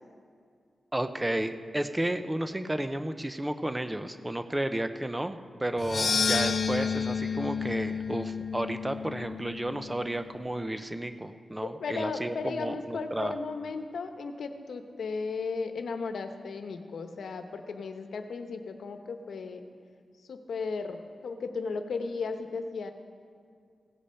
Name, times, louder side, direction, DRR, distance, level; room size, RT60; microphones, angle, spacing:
voice 1, 0.9-13.3, right 1 dB, 10° right, 9 dB, 0.5 m, -32 dB
sound 1, 5.8-10.1, left 5 dB, 50° left, 0.7 m, -30 dB
voice 2, 11.6-19.6 20.3-22.9, left 4 dB, 85° left, 7 dB, 0.9 m, -35 dB
17.0 x 8.4 x 5.7 m, 2.2 s
wide cardioid pair, 160°, 0 cm